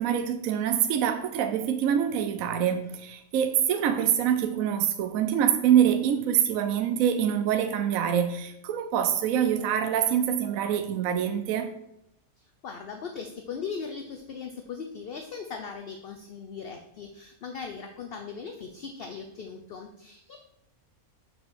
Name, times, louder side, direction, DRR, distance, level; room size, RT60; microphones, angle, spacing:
voice 1, 0.0-11.7, right 9 dB, 70° right, 7 dB, 1.0 m, -25 dB
voice 2, 12.6-20.4, left 5 dB, 55° left, 5 dB, 0.7 m, -39 dB
6.0 x 4.6 x 6.3 m, 0.80 s
omnidirectional pair, 1.6 m